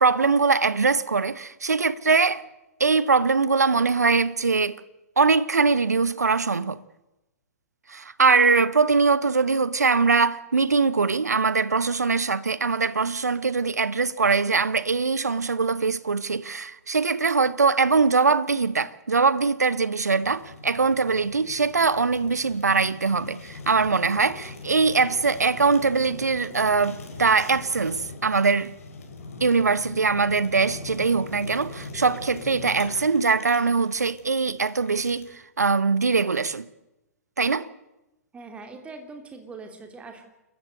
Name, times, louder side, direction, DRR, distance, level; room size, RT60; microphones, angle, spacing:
voice 1, 0.0-2.4 2.8-4.8 5.2-6.8 7.9-28.7 29.4-36.6 37.4-37.7, right 4 dB, 75° right, 1.1 m, -22 dB
Fire, 20.2-35.4, left 3 dB, 60° left, 5.1 m, -42 dB
voice 2, 38.3-40.2, right 3 dB, 15° right, 3.2 m, -41 dB
29.0 x 14.5 x 7.9 m
figure-of-eight pair, 115°, 9 cm